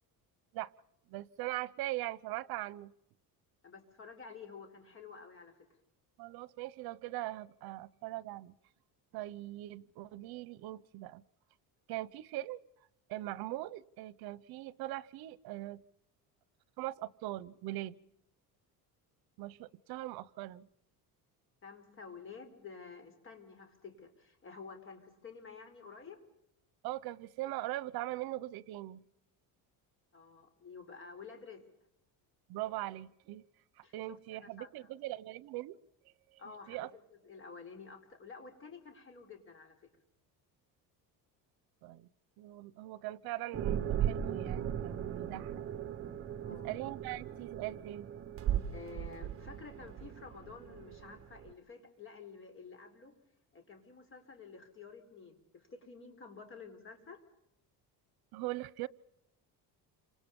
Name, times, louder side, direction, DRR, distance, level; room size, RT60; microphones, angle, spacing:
voice 1, 1.1-2.9 6.2-8.5 9.1-11.2 11.9-12.6 13.1-15.8 16.8-18.0 19.4-20.7 26.8-29.0 32.5-33.4 33.8-35.8 36.3-36.4 36.7-36.9 41.8-42.1 42.4-45.6 46.5-48.1 58.3-58.9, right 16 dB, 75° right, 1.0 m, -41 dB
voice 2, 3.6-5.7 21.6-26.2 30.1-31.6 33.8-34.7 36.4-36.8 37.2-39.8 46.4-46.7 48.7-53.2 53.5-57.2, left 5 dB, 35° left, 4.4 m, -51 dB
sound 1, 43.5-51.5, right 10 dB, 35° right, 1.4 m, -37 dB
29.5 x 26.5 x 5.4 m
cardioid pair, 155°, 37 cm